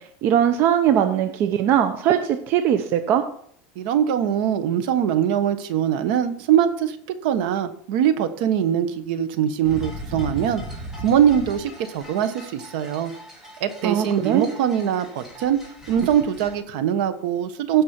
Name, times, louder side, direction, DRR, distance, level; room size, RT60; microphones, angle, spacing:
voice 1, 0.0-3.2 13.8-14.5, right 9 dB, 45° right, 8 dB, 0.7 m, -20 dB
voice 2, 3.7-10.6 11.0-13.1 13.6-15.6 15.9-17.8, right 9 dB, 65° right, 11 dB, 1.2 m, -22 dB
sound 1, 9.6-16.6, equal, 5° right, 2.7 m, -38 dB
15.5 x 5.4 x 4.5 m, 0.63 s
supercardioid pair, 155°, 5 cm